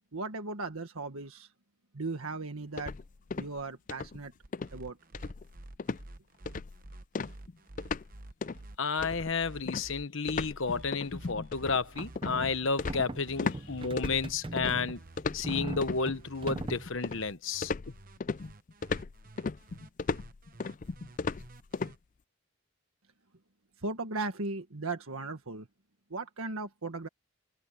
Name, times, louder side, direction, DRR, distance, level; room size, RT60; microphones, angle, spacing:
voice 1, 0.1-1.5 1.9-2.9 3.4-4.3 4.7-5.0 23.8-25.7 26.1-27.1, right 3 dB, 80° right, 1.7 m, -37 dB
sound 1, 2.8-3.6 3.9-4.2 4.5-4.8 5.1-5.5 5.8-6.1 6.5-6.8 7.1-8.1 8.4-8.6 9.0-13.6 14.0-14.7 15.2-16.0 16.5-17.3 17.6-21.9, left 4 dB, 35° left, 0.4 m, -36 dB
sound 2, 4.4-22.0, right 2 dB, 40° right, 1.0 m, -51 dB
voice 2, 8.8-15.0 15.3-17.7, left 4 dB, 65° left, 1.1 m, -31 dB
sound 3, 11.8-16.9, right 1 dB, 25° right, 0.6 m, -40 dB
head